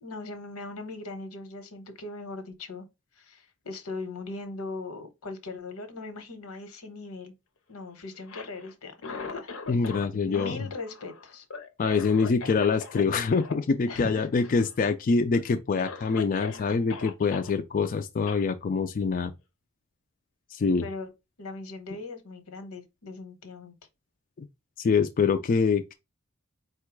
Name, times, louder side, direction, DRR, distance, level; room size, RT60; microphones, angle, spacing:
voice 1, 0.0-2.9 3.2-7.3 7.7-9.5 10.3-11.4 13.9-14.5 20.8-21.1 21.4-23.7, left 3 dB, 90° left, 1.1 m, -39 dB
Cough, 8.2-10.1 10.3-13.0 13.3-13.5 13.9-14.1 14.4-14.9 15.3-15.4 15.8-17.5 18.3-18.4, left 4 dB, 65° left, 0.7 m, -40 dB
voice 2, 9.7-10.6 11.8-19.3 20.5-20.9 24.4-24.5 24.8-25.9, left 5 dB, 40° left, 0.3 m, -25 dB
4.4 x 2.2 x 4.6 m
head